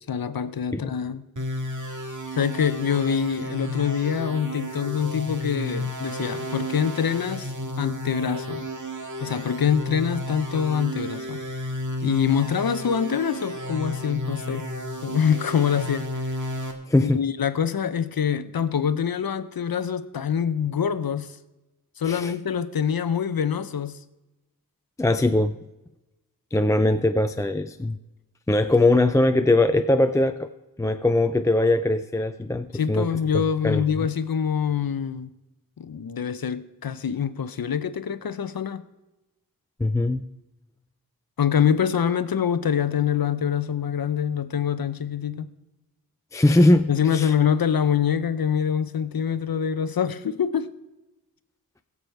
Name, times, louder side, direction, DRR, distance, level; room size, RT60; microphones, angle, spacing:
voice 1, 0.1-1.3 1.9-2.0 2.4-8.7 9.2-11.4 12.0-14.7 15.0-16.1 17.0-21.3 22.0-24.0 32.7-35.3 35.8-38.8 41.4-45.5 46.9-50.7, left 8 dB, 70° left, 14 dB, 0.7 m, -25 dB
sound 1, 1.4-16.7, equal, 55° right, 1.9 m, -33 dB
voice 2, 16.9-17.2 22.0-22.3 25.0-25.6 26.5-28.0 28.5-30.5 30.8-33.1 33.3-33.8 39.8-40.2 46.3-47.3, left 2 dB, 10° left, 8 dB, 0.4 m, -21 dB
21.0 x 7.0 x 4.6 m, 1.0 s
wide cardioid pair, 80°, 36 cm